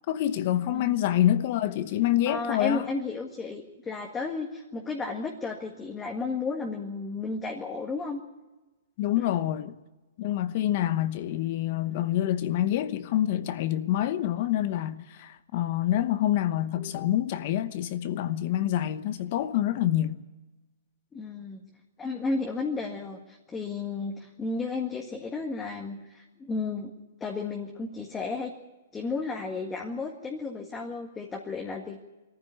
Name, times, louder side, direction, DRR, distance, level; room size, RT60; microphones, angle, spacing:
voice 1, 0.1-2.9 9.0-9.8 10.2-20.2, left 12 dB, 45° left, 1.0 m, -27 dB
voice 2, 2.3-8.2 9.2-9.4 21.1-21.6 22.0-26.9 27.2-28.5 28.9-32.0, left 3 dB, 10° left, 1.8 m, -33 dB
21.5 x 14.5 x 9.7 m
hypercardioid pair, 155°, 0 cm